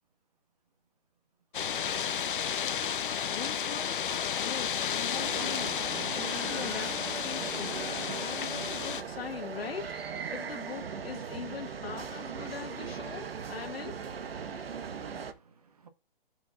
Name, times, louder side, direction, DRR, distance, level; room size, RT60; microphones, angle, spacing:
sound 1, 1.5-9.0, left 8 dB, 60° left, 0.6 m, -32 dB
voice 1, 3.2-4.0 4.4-5.8 6.1-7.8 8.2-10.0 10.3-14.0, left 7 dB, 85° left, 1.1 m, -41 dB
sound 2, 5.2-15.3, right 6 dB, 90° right, 1.1 m, -39 dB
voice 2, 14.4-15.9, right 5 dB, 40° right, 1.1 m, -61 dB
10.0 x 6.8 x 2.4 m
hypercardioid pair, 180°, 29 cm